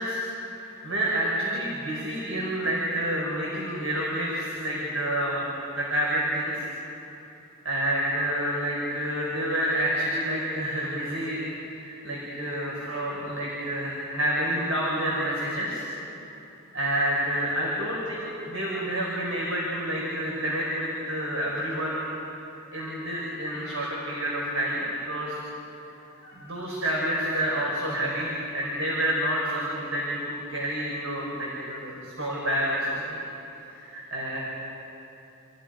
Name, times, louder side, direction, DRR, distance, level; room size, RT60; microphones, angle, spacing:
voice 1, 0.0-6.5 6.8-6.9 7.7-15.9 16.7-22.1 22.7-25.4 26.2-33.2 33.7-34.4, right 1 dB, 75° right, -5 dB, 5.2 m, -29 dB
29.0 x 28.5 x 5.2 m, 2.9 s
head